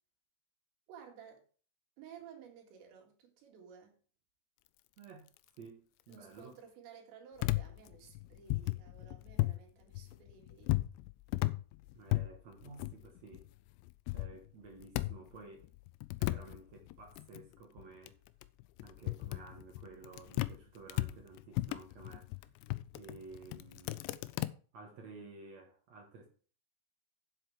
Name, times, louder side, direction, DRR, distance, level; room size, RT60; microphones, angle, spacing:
voice 1, 0.9-1.4 2.0-4.0 6.1-10.8, right 7 dB, 80° right, 4.5 m, -55 dB
voice 2, 5.0-6.6 11.9-13.5 14.1-15.7 16.2-18.2 18.8-22.3 22.9-24.0 24.7-26.3, right 4 dB, 60° right, 1.8 m, -53 dB
sound 1, 7.4-9.6 9.9-13.5 13.8-15.4 15.6-20.6 20.9-24.5, left 19 dB, 90° left, 2.8 m, -36 dB
8.1 x 7.9 x 4.8 m
omnidirectional pair, 5.0 m